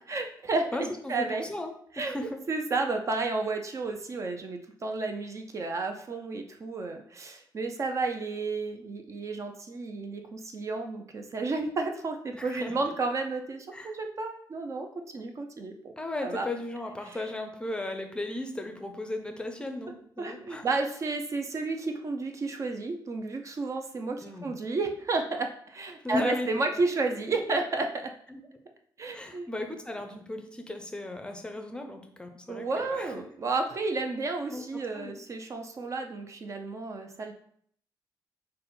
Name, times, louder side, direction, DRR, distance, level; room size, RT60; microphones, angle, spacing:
voice 1, 0.1-1.4 2.0-2.2 2.5-14.9 15.1-15.9 16.2-16.5 17.1-17.2 20.2-28.1 29.0-29.5 32.5-37.3, right 3 dB, 40° right, 5 dB, 0.5 m, -32 dB
voice 2, 0.7-2.4 12.3-12.9 13.7-14.0 16.0-20.7 24.2-24.6 26.0-26.6 28.3-28.4 29.1-33.1 34.5-34.7 34.9-35.1, left 1 dB, 10° left, 5 dB, 0.6 m, -36 dB
5.3 x 2.1 x 4.2 m, 0.63 s
cardioid pair, 115°, 8 cm